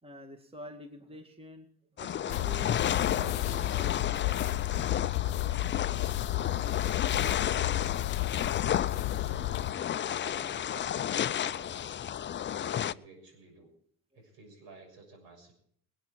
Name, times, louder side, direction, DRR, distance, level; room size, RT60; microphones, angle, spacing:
voice 1, 0.0-1.7 1.9-4.8 5.1-5.6 6.0-6.1 9.6-9.9 14.1-14.3, right 1 dB, 15° right, 6 dB, 2.2 m, -48 dB
sound 1, 2.0-12.9, left 10 dB, 25° left, 0.5 m, -32 dB
sound 2, 2.3-9.7, left 16 dB, 65° left, 0.7 m, -32 dB
voice 2, 8.7-9.4 10.0-11.8 12.6-13.7 14.1-15.5, right 3 dB, 65° right, 3 dB, 6.9 m, -52 dB
25.0 x 9.2 x 4.7 m, 0.64 s
hypercardioid pair, 55°, 44 cm